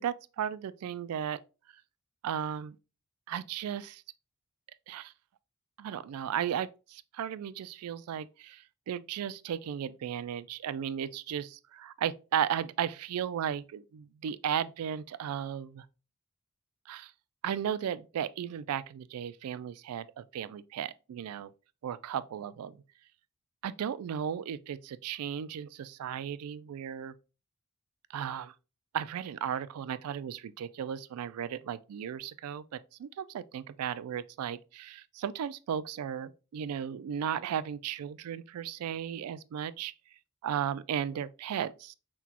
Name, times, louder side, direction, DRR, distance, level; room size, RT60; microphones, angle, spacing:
voice 1, 0.0-1.4 2.2-2.8 3.3-4.0 4.9-5.1 5.8-15.9 16.9-17.1 17.4-21.5 21.8-22.8 23.6-27.1 28.1-28.5 28.9-39.9 40.4-41.9, right 9 dB, 90° right, 0.3 m, -35 dB
5.9 x 2.2 x 2.8 m
head